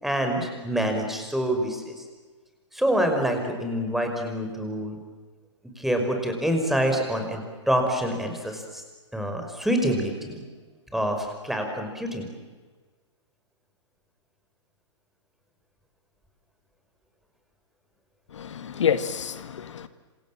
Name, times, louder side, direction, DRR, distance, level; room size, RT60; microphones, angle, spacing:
voice 1, 0.0-2.0 2.7-5.0 5.8-7.4 7.7-8.8 9.1-10.4 10.9-12.3, equal, ahead, 4 dB, 5.4 m, -26 dB
voice 2, 18.3-19.9, left 8 dB, 75° left, 11 dB, 1.6 m, -28 dB
27.5 x 27.0 x 7.6 m, 1.4 s
hypercardioid pair, 135°, 15 cm